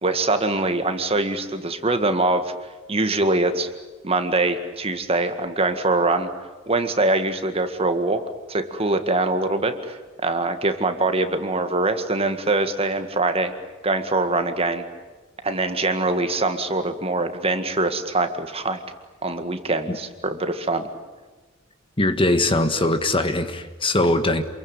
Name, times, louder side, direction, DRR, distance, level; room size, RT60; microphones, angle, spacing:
voice 1, 0.0-2.5 2.9-3.7 4.0-6.3 6.7-8.2 8.5-10.0 10.2-13.5 13.8-14.9 15.4-18.8 19.2-20.9, right 2 dB, 30° right, 8 dB, 1.9 m, -23 dB
voice 2, 22.0-24.4, left 2 dB, 25° left, 9 dB, 1.6 m, -21 dB
28.0 x 22.5 x 9.1 m, 1.2 s
head